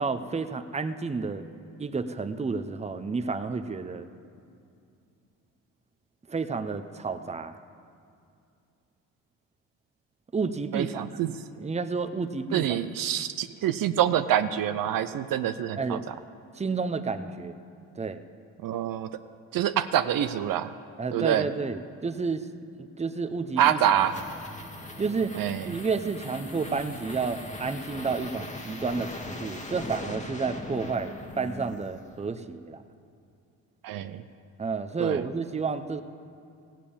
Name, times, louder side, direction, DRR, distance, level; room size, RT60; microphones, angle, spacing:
voice 1, 0.0-1.4 1.8-4.1 6.3-7.5 10.3-11.1 11.6-12.7 15.8-16.0 16.5-17.5 17.9-18.2 21.0-22.5 23.0-23.8 25.0-25.4 25.7-32.8 34.6-36.0, right 4 dB, 20° right, 9 dB, 0.8 m, -30 dB
voice 2, 10.7-11.3 12.5-16.1 18.6-19.1 19.5-20.7 21.1-21.5 23.6-24.2 25.4-25.7 33.8-34.2 35.0-35.2, right 10 dB, 65° right, 11 dB, 0.6 m, -26 dB
sound 1, 23.4-32.3, left 2 dB, 20° left, 1.5 m, -40 dB
15.5 x 7.5 x 8.6 m, 2.5 s
supercardioid pair, 65°, 37 cm